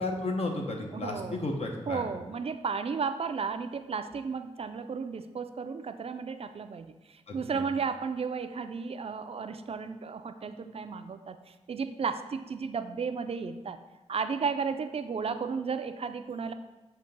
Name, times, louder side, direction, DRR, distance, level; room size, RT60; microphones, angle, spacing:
voice 1, 0.0-2.1 7.3-7.5, left 2 dB, 65° left, 1 dB, 1.0 m, -33 dB
voice 2, 0.9-1.4 1.9-13.8 14.1-16.5, right 5 dB, 60° right, 9 dB, 0.4 m, -34 dB
7.7 x 2.8 x 5.3 m, 1.1 s
wide cardioid pair, 90°, 12 cm